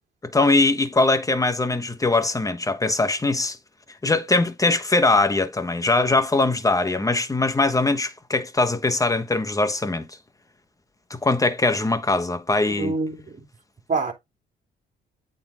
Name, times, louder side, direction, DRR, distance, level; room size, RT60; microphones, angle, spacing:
voice 1, 0.3-3.6 4.0-10.1 11.2-12.9, left 2 dB, 15° left, 1.2 m, -21 dB
voice 2, 12.8-13.5 13.9-14.1, right 3 dB, 40° right, 3.2 m, -26 dB
8.6 x 4.0 x 3.6 m
cardioid pair, 90°, 20 cm